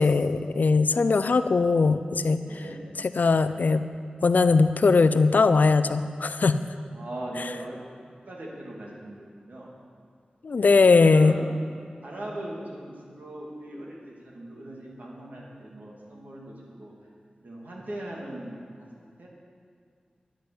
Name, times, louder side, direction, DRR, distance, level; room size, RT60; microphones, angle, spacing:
voice 1, 0.0-2.4 3.2-3.8 4.2-6.6 10.4-11.3, left 4 dB, 75° left, 12 dB, 0.5 m, -20 dB
voice 2, 2.4-2.8 6.9-7.9 8.3-9.7 10.5-11.5 12.0-16.9 17.4-18.9 19.2-19.3, right 1 dB, 75° right, -3 dB, 2.8 m, -39 dB
11.0 x 9.0 x 7.1 m, 2.2 s
cardioid pair, 45°, 3 cm